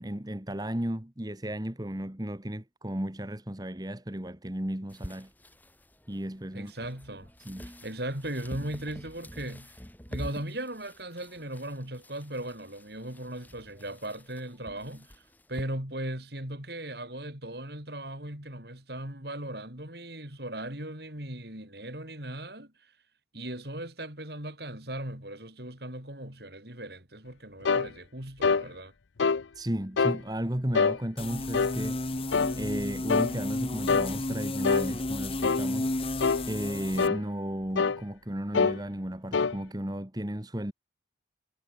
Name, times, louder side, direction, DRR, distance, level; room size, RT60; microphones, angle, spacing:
voice 1, 0.0-5.3 6.1-6.7 7.4-7.7 29.5-32.3 32.5-35.9 36.5-40.7, right 1 dB, 20° right, 1.6 m, -34 dB
sound 1, 4.9-15.6, equal, 10° left, 4.2 m, -47 dB
voice 2, 6.5-7.3 7.6-9.7 10.1-15.2 15.5-22.9 23.3-28.9, right 1 dB, 60° right, 6.7 m, -38 dB
sound 2, 27.6-27.9 28.4-28.7 29.2-29.4 30.0-30.2 30.7-31.0 31.5-31.8 32.3-32.6 33.1-33.3 33.9-34.1 34.6-34.9 35.4-35.7 36.2-36.4 37.0-37.2 37.8-38.0 38.5-38.8 39.3-39.6, left 5 dB, 80° left, 0.6 m, -24 dB
sound 3, 31.2-37.1, left 1 dB, 30° left, 1.2 m, -32 dB
head